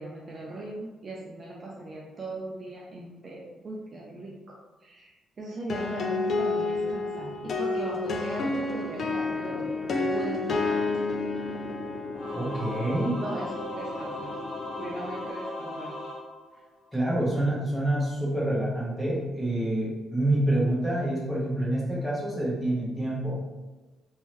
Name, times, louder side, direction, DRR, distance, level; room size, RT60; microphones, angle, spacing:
voice 1, 0.0-10.8 13.2-14.4 14.8-15.9, right 2 dB, 30° right, -3 dB, 0.4 m, -39 dB
sound 1, 5.7-15.3, left 3 dB, 40° left, 0.4 m, -31 dB
Singing / Musical instrument, 12.1-17.0, left 1 dB, 70° left, 1.4 m, -37 dB
voice 2, 12.3-13.2 16.9-23.4, right 1 dB, 5° left, -7 dB, 1.0 m, -27 dB
3.6 x 3.1 x 3.0 m, 1.2 s
cardioid pair, 165°, 0 cm